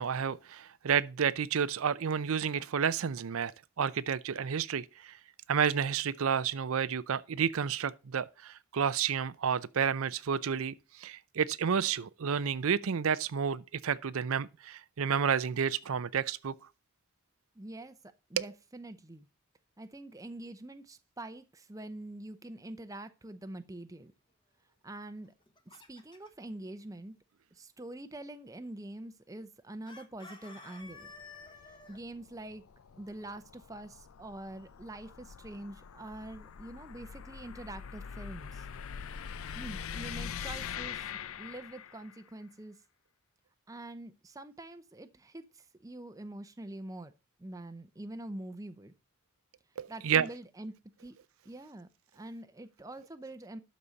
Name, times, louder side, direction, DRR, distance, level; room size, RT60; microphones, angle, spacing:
voice 1, 0.0-3.5 3.8-5.2 5.5-16.5 18.4-18.5 49.8-50.3, right 7 dB, 70° right, 0.5 m, -30 dB
voice 2, 17.5-18.0 18.3-19.3 19.8-24.1 24.8-25.3 25.7-27.2 27.5-31.1 31.9-32.6 33.0-38.7 39.5-42.8 43.7-47.1 47.4-48.9 49.9-51.2 51.4-51.9 52.1-53.6, right 1 dB, 15° right, 0.6 m, -45 dB
Chicken rooster, 25.2-26.4 29.8-32.0, left 3 dB, 20° left, 1.2 m, -51 dB
sound 1, 30.8-42.2, left 7 dB, 70° left, 0.5 m, -44 dB
12.0 x 4.2 x 6.4 m
head